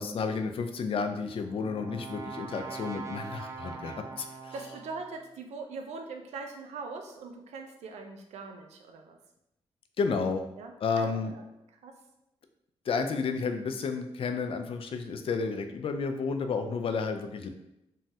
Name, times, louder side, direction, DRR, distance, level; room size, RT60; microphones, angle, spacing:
voice 1, 0.0-4.5 10.0-10.4 10.8-11.3 12.9-17.5, left 5 dB, 55° left, 7 dB, 0.4 m, -31 dB
Brass instrument, 1.1-5.2, right 4 dB, 25° right, 0.4 m, -42 dB
voice 2, 4.2-9.2 10.6-11.5 11.8-11.9, right 4 dB, 90° right, 4 dB, 0.4 m, -42 dB
3.1 x 2.2 x 2.7 m, 0.86 s
cardioid pair, 70°, 11 cm